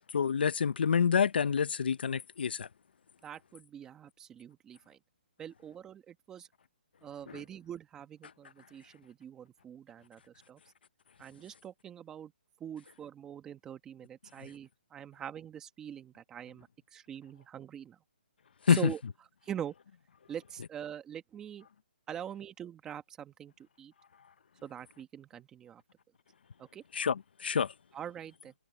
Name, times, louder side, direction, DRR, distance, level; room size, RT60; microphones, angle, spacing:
voice 1, 0.1-2.7 7.3-7.4 18.7-18.9 26.9-27.7, left 7 dB, 65° left, 0.7 m, -28 dB
voice 2, 3.2-5.0 5.4-6.5 7.0-10.6 11.2-12.3 12.6-18.0 18.7-19.0 19.4-19.7 20.3-21.6 22.1-23.9 24.6-25.8 26.6-26.8 27.9-28.5, right 9 dB, 10° right, 1.5 m, -44 dB
hypercardioid pair, 165°, 6 cm